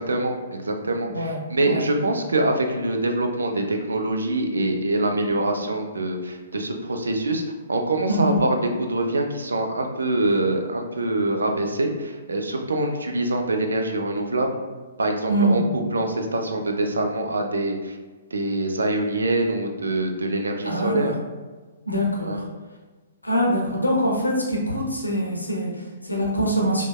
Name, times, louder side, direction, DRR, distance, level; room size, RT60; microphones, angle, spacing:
voice 1, 0.0-7.4 7.7-14.5 15.0-15.6 15.9-18.0 18.3-21.1 22.3-22.4, right 2 dB, 75° right, 3 dB, 0.4 m, -24 dB
voice 2, 15.3-15.7 20.6-21.1 21.9-22.4 23.2-26.9, equal, 90° left, -2 dB, 0.6 m, -24 dB
3.2 x 2.1 x 2.3 m, 1.3 s
figure-of-eight pair, 120°, 0 cm